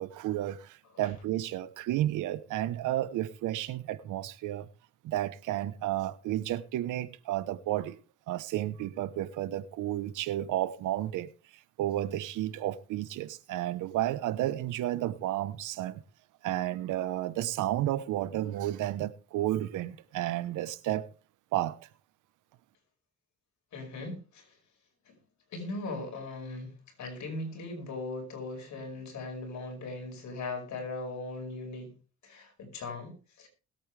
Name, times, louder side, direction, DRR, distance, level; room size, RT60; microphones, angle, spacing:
voice 1, 0.0-4.7 5.0-8.0 8.3-11.3 11.8-16.0 16.4-21.1 21.5-21.9, right 13 dB, 90° right, 1.0 m, -32 dB
voice 2, 23.7-24.5 25.1-25.2 25.5-31.9 32.2-33.5, left 2 dB, 70° left, 5.4 m, -39 dB
21.0 x 8.7 x 3.4 m
cardioid pair, 90°, 30 cm